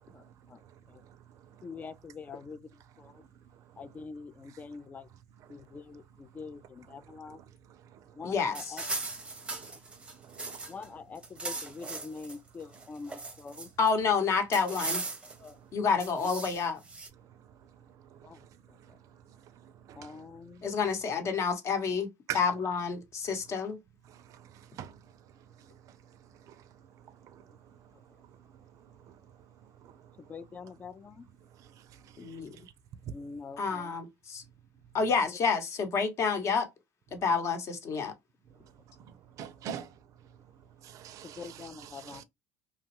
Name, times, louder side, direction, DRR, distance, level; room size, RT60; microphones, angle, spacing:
voice 1, 1.6-2.6 3.0-3.2 3.8-5.1 5.5-7.4 8.2-8.8 9.7-9.8 10.7-13.7 15.4-15.6 18.2-18.4 20.0-20.6 30.3-31.3 33.1-33.9 41.4-42.2, left 4 dB, 25° left, 0.4 m, -44 dB
voice 2, 8.2-8.8 13.8-15.0 15.7-16.8 20.6-22.1 22.3-23.8 32.2-32.6 33.6-34.4 34.9-36.7 37.1-38.1, left 5 dB, 45° left, 0.9 m, -29 dB
sound 1, 8.5-10.9 11.1-12.4 12.7-13.9 14.5-15.5 16.0-17.1, right 3 dB, 15° right, 0.7 m, -38 dB
voice 3, 10.3-10.6 19.9-20.1 22.3-22.4 24.8-24.9 39.4-39.9 40.8-42.2, right 10 dB, 55° right, 0.5 m, -41 dB
2.9 x 2.2 x 2.9 m
supercardioid pair, 110°, 7 cm